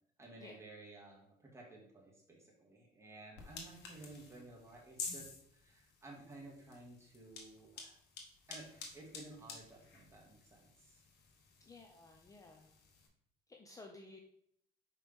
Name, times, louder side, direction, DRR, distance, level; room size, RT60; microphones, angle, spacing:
voice 1, 0.2-8.0 8.5-11.0, right 2 dB, 15° right, -3 dB, 2.1 m, -55 dB
sound 1, 3.4-13.1, left 4 dB, 80° left, 1.4 m, -51 dB
voice 2, 11.6-12.7 13.5-14.2, left 2 dB, 20° left, 2 dB, 0.6 m, -55 dB
5.7 x 4.8 x 3.5 m, 0.72 s
cardioid pair, 110°, 17 cm